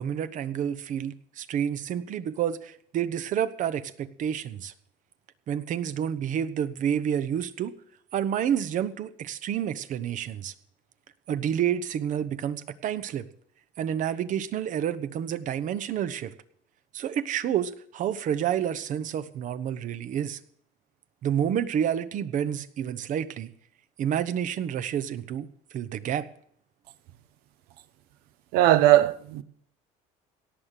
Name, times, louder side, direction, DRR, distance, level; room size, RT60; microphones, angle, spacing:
voice 1, 0.0-4.7 5.5-7.7 8.1-10.5 11.3-13.3 13.8-16.3 16.9-20.4 21.2-23.5 24.0-25.5 25.7-26.3, right 9 dB, 55° right, 1.0 m, -29 dB
voice 2, 28.5-29.4, right 14 dB, 80° right, 0.8 m, -19 dB
17.5 x 6.7 x 7.5 m
cardioid pair, 110°, 16 cm